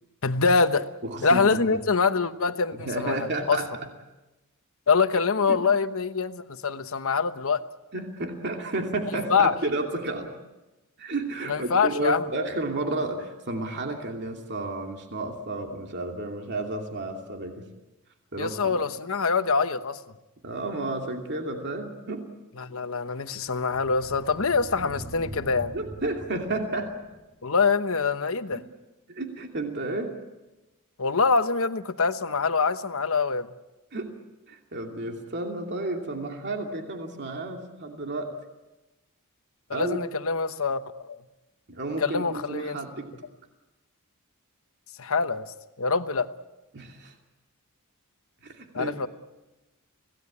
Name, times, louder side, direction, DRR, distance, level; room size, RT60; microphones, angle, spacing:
voice 1, 0.2-0.9 1.2-3.6 4.9-7.6 9.3-9.5 11.5-12.2 18.3-20.0 22.6-25.7 27.4-28.6 31.0-33.5 39.7-41.2 42.0-42.8 45.0-46.3 48.7-49.1, left 4 dB, 65° left, 10 dB, 1.1 m, -25 dB
voice 2, 1.0-1.4 1.7-1.8 2.7-3.7 5.5-5.6 7.9-10.3 11.0-17.7 18.3-18.8 20.4-22.3 25.7-26.9 29.1-30.2 33.9-34.1 34.5-38.3 39.7-40.0 41.7-43.1 46.7-47.1 48.4-49.1, right 2 dB, 50° right, 2 dB, 2.6 m, -32 dB
sound 1, 22.3-27.5, right 1 dB, 30° right, 5.3 m, -44 dB
26.0 x 17.5 x 8.5 m, 1.1 s
head